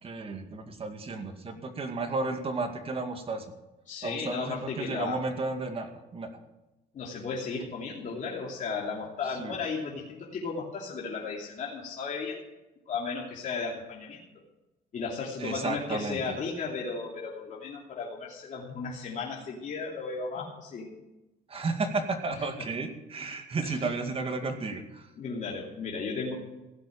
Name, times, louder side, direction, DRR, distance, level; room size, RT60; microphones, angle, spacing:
voice 1, 0.0-3.4 4.0-6.3 9.4-9.6 15.4-16.3 21.5-25.1, right 3 dB, 35° right, 6 dB, 2.1 m, -33 dB
voice 2, 3.9-5.2 6.9-12.4 12.9-14.2 14.9-20.9 22.3-22.7 23.6-23.8 25.2-26.3, left 4 dB, 45° left, -3 dB, 3.0 m, -35 dB
16.0 x 7.8 x 8.7 m, 1.0 s
cardioid pair, 110°, 17 cm